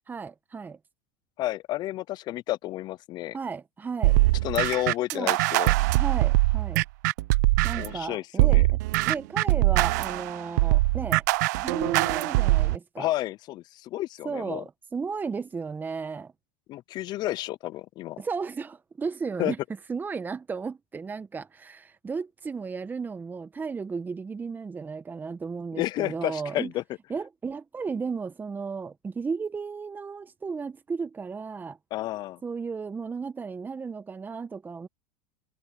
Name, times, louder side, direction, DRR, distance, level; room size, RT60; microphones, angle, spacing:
voice 1, 0.1-0.8 3.3-4.2 5.1-5.4 5.9-6.8 7.6-8.8 9.1-11.2 11.6-13.1 14.2-16.3 18.2-19.6 19.9-26.7 27.1-31.8 32.4-34.9, right 5 dB, 20° right, 1.3 m, -34 dB
voice 2, 1.4-3.4 4.4-5.7 7.7-8.6 13.0-14.6 16.7-18.2 19.4-19.5 25.7-26.8 31.9-32.4, left 15 dB, 45° left, 0.6 m, -31 dB
sound 1, 4.0-8.0 8.4-12.8, right 20 dB, 70° right, 0.8 m, -22 dB
hypercardioid pair, 95°, 10 cm